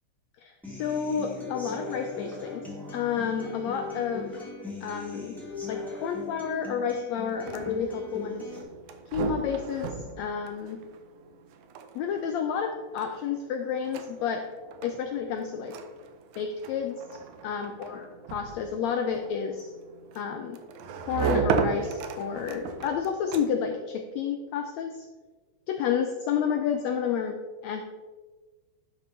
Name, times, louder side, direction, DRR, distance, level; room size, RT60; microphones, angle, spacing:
voice 1, 0.4-2.6 2.9-4.3 4.8-5.3 5.7-8.5 9.1-10.8 11.9-14.4 14.8-15.8 16.4-17.0 17.4-19.7 20.1-20.6 21.1-25.0 25.7-27.4 27.6-27.8, left 7 dB, 85° left, 5 dB, 1.5 m, -30 dB
Human voice / Acoustic guitar, 0.6-8.6, left 3 dB, ahead, 1.5 m, -39 dB
sound 1, 7.3-23.8, right 6 dB, 75° right, 1.9 m, -35 dB
11.0 x 5.5 x 3.9 m, 1.3 s
omnidirectional pair, 3.8 m